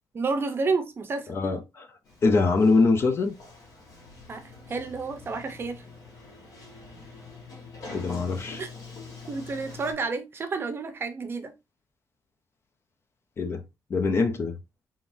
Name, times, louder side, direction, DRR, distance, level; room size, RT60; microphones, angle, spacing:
voice 1, 0.1-1.3 4.3-5.8 8.6-8.7 9.3-11.5, right 4 dB, 35° right, 0.6 m, -30 dB
voice 2, 1.3-1.9 2.2-3.3 7.9-8.6 13.4-13.6 13.9-14.6, left 3 dB, 40° left, 0.5 m, -23 dB
Sliding door, 2.0-9.9, left 3 dB, 65° left, 1.9 m, -45 dB
3.7 x 3.5 x 2.6 m
wide cardioid pair, 165°, 7 cm